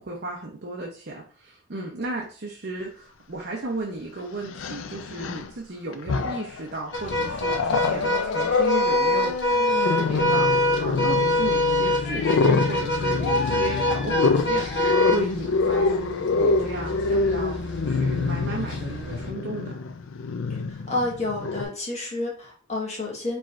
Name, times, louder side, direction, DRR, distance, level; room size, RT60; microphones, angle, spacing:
voice 1, 0.0-17.6 17.9-19.8, right 2 dB, 55° right, -1 dB, 0.8 m, -35 dB
Growling, 3.4-3.5 4.5-5.5 5.9-6.6 7.1-21.6, left 4 dB, 80° left, 0.4 m, -26 dB
sound 1, 6.9-19.3, left 1 dB, 65° left, 1.0 m, -26 dB
voice 2, 20.7-23.4, left 2 dB, 35° left, -2 dB, 1.5 m, -30 dB
4.7 x 4.2 x 2.5 m, 0.43 s
head